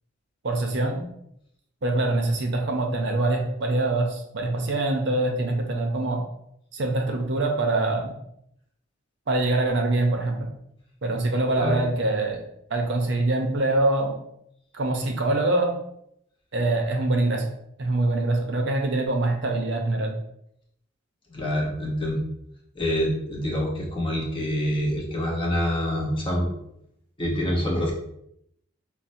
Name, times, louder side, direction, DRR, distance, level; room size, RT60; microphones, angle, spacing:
voice 1, 0.4-1.0 1.8-6.2 6.7-8.1 9.3-10.4 11.0-12.4 12.7-14.2 14.7-15.7 16.5-17.5 17.8-20.2, right 2 dB, 55° right, 2 dB, 0.6 m, -24 dB
voice 2, 21.3-22.2 22.8-26.5 27.2-27.9, equal, 25° left, -2 dB, 0.7 m, -26 dB
5.6 x 2.0 x 2.6 m, 0.75 s
head